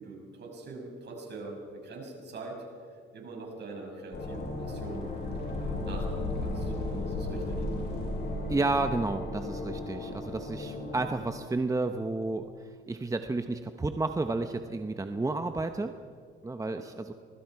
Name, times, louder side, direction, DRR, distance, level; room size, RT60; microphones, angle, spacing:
voice 1, 0.0-2.7 3.1-5.1 5.6-6.7 7.1-7.6 16.7-16.8, right 3 dB, 60° right, 0 dB, 6.5 m, -43 dB
sound 1, 4.1-11.1, left 2 dB, 55° left, 7.4 m, -34 dB
voice 2, 8.5-15.9 16.4-17.1, right 2 dB, 15° right, 7 dB, 0.9 m, -31 dB
26.5 x 20.5 x 4.7 m, 2.1 s
cardioid pair, 90°, 20 cm